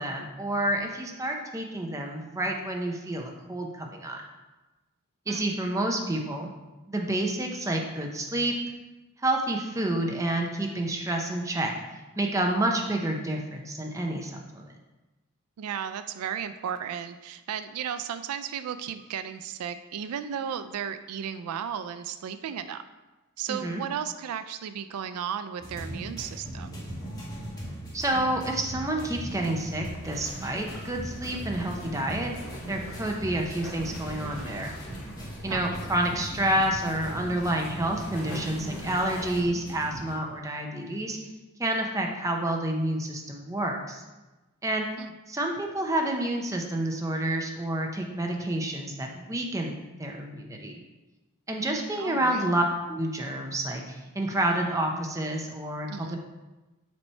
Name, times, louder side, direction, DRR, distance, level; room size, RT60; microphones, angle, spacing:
voice 1, 0.0-4.2 5.3-6.5 6.9-8.5 9.2-11.7 12.2-14.7 23.5-23.8 27.9-32.3 32.7-34.7 35.4-41.2 41.6-44.0 44.6-44.9 45.3-50.8 51.5-56.2, right 1 dB, 15° right, 1 dB, 0.6 m, -29 dB
voice 2, 15.6-22.8 23.4-26.7 35.5-35.6 45.0-45.1 52.0-52.5 55.9-56.2, right 8 dB, 85° right, 11 dB, 0.3 m, -34 dB
sound 1, 25.6-40.2, right 1 dB, 15° left, 1.3 m, -39 dB
sound 2, 30.0-39.4, equal, 75° left, 1.5 m, -44 dB
7.2 x 3.2 x 4.3 m, 1.1 s
head